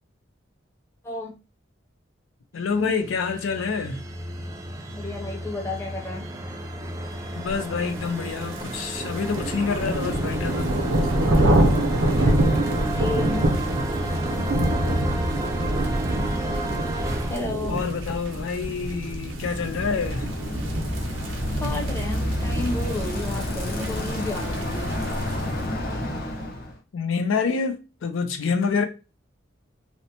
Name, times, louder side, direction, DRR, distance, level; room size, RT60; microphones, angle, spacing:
voice 1, 1.0-1.4 4.9-6.2 12.1-12.6 12.9-13.6 17.3-17.8 21.6-24.4 24.8-24.9, left 2 dB, 15° left, 0.7 m, -32 dB
voice 2, 2.5-4.0 7.4-10.8 11.4-11.8 17.7-20.3 23.5-23.8 26.9-28.9, left 5 dB, 85° left, 0.4 m, -27 dB
sound 1, 2.7-17.4, right 1 dB, 15° right, 0.3 m, -32 dB
sound 2, 8.1-25.6, right 1 dB, 85° right, 0.6 m, -26 dB
Bicycle, 19.2-26.7, left 1 dB, 50° left, 0.7 m, -29 dB
2.7 x 2.1 x 2.7 m
head